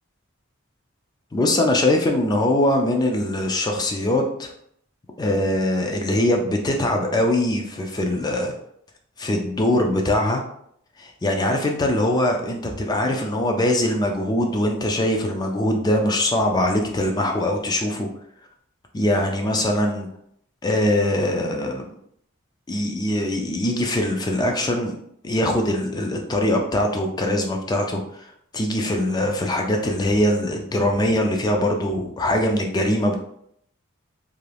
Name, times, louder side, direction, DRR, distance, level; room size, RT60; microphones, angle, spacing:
voice 1, 1.3-4.5 5.2-8.5 9.2-10.4 11.0-18.1 18.9-20.1 20.6-21.9 22.7-24.9 25.2-28.3 28.5-33.2, left 1 dB, 20° left, 2 dB, 0.3 m, -22 dB
2.7 x 2.5 x 3.3 m, 0.70 s
head